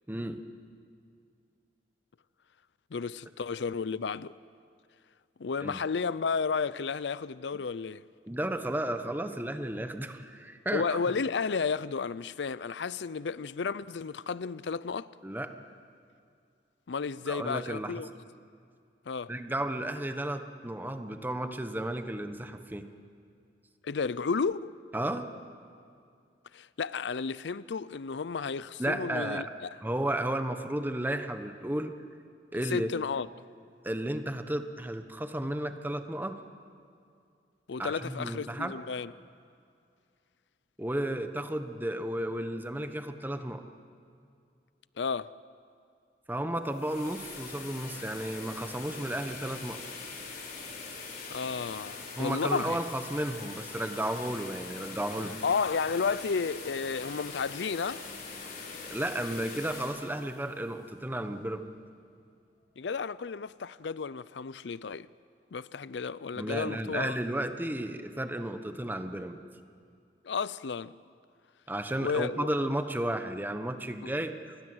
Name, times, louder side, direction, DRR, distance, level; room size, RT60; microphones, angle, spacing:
voice 1, 0.1-0.4 5.6-5.8 8.3-11.0 15.2-15.5 17.3-17.9 19.3-22.9 24.9-25.3 28.8-29.4 29.8-31.9 32.5-32.9 33.8-36.4 37.8-38.7 40.8-43.6 46.3-49.8 52.2-55.4 58.9-61.6 66.4-69.4 71.7-74.6, right 1 dB, 10° right, 1.2 m, -33 dB
voice 2, 2.9-4.3 5.4-8.0 10.7-15.1 16.9-18.1 19.1-19.3 23.8-24.8 26.5-29.7 32.6-33.3 37.7-39.1 45.0-45.3 51.3-52.8 55.4-58.1 62.8-65.1 65.5-67.2 70.2-71.0 72.0-72.5, left 5 dB, 85° left, 0.5 m, -32 dB
sound 1, 46.5-61.4, left 4 dB, 55° left, 4.5 m, -43 dB
28.0 x 21.0 x 7.9 m
head